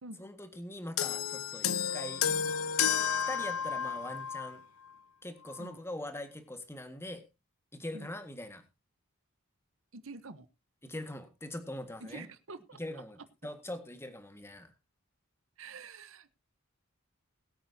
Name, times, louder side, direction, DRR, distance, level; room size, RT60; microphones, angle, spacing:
voice 1, 0.2-2.2 3.3-4.6 5.2-7.2 7.7-8.6 10.8-12.2 12.8-14.7, left 1 dB, 10° left, 8 dB, 1.7 m, -42 dB
sound 1, 1.0-4.6 5.5-5.6, left 8 dB, 75° left, 0.9 m, -31 dB
voice 2, 9.9-10.5 12.0-12.8 15.6-16.3, right 3 dB, 65° right, 13 dB, 1.0 m, -47 dB
21.5 x 8.9 x 2.8 m, 0.26 s
head